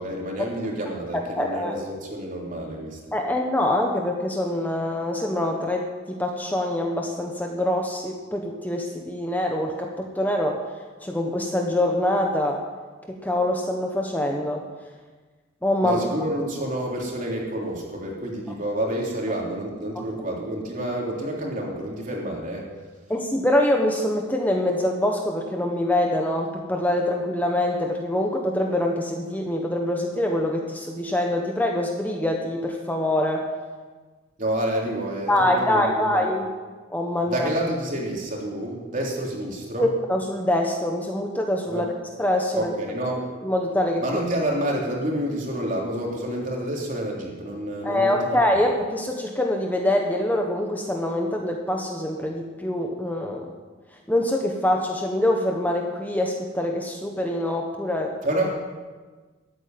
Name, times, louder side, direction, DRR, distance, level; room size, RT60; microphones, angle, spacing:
voice 1, 0.0-3.0 15.8-22.7 34.4-36.2 37.3-39.9 41.7-41.8 42.5-43.3 44.0-48.4 58.2-58.5, right 1 dB, 45° right, -2 dB, 3.5 m, -28 dB
voice 2, 1.4-1.8 3.1-10.6 11.0-12.6 13.1-14.6 15.6-16.0 23.1-33.4 35.3-36.5 36.9-37.5 39.8-41.8 42.2-42.7 43.4-44.0 47.8-53.5 54.1-58.1, left 1 dB, 10° left, 1 dB, 1.2 m, -24 dB
14.0 x 9.0 x 9.3 m, 1.4 s
head